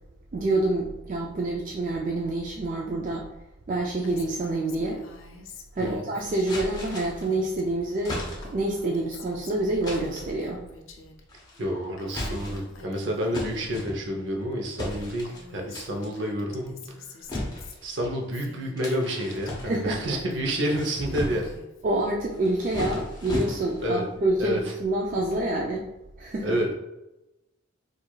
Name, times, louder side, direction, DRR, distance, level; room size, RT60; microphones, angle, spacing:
voice 1, 0.3-3.3 3.7-5.0 5.8-8.2 8.5-10.6 19.6-20.0 21.8-25.9 26.2-26.6, right 2 dB, 40° right, -2 dB, 0.3 m, -27 dB
Female speech woman speaking, 4.0-7.6 7.9-11.2 11.5-13.9 14.5-14.6 14.8-19.5 20.0-21.9, left 3 dB, 80° left, 0.5 m, -48 dB
voice 2, 5.8-6.1 11.6-16.9 17.8-21.5 23.8-24.0 24.4-24.6 26.4-26.7, equal, 65° right, 1 dB, 0.7 m, -29 dB
sound 1, 6.5-7.3 8.0-8.7 9.8-10.3 11.3-11.7 12.1-12.8 13.3-14.3 14.8-15.4 15.7-16.2 17.3-18.2 18.8-20.0 20.5-21.6 22.3-23.9, left 1 dB, 20° left, 0.6 m, -35 dB
4.5 x 2.4 x 2.3 m, 0.97 s
head